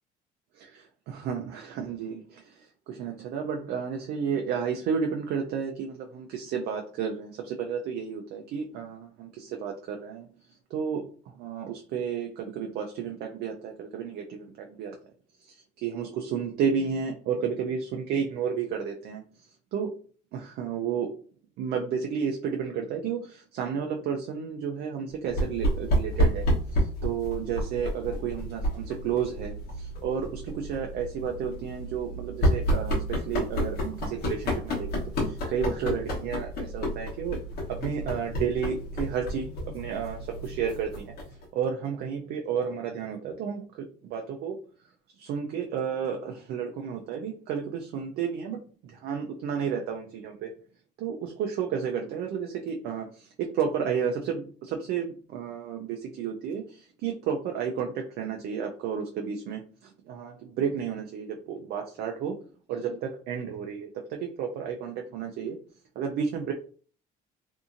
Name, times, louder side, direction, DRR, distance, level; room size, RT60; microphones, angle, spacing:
voice 1, 0.6-10.3 10.7-14.9 15.4-19.9 20.3-21.2 21.6-34.9 35.2-37.4 37.7-41.1 41.5-44.6 45.2-50.5 51.0-62.3 62.7-65.6 66.0-66.5, right 7 dB, 75° right, 2 dB, 0.5 m, -32 dB
sound 1, 25.3-41.4, equal, 75° left, 1.1 m, -30 dB
2.7 x 2.6 x 2.5 m, 0.42 s
cardioid pair, 110°, 17 cm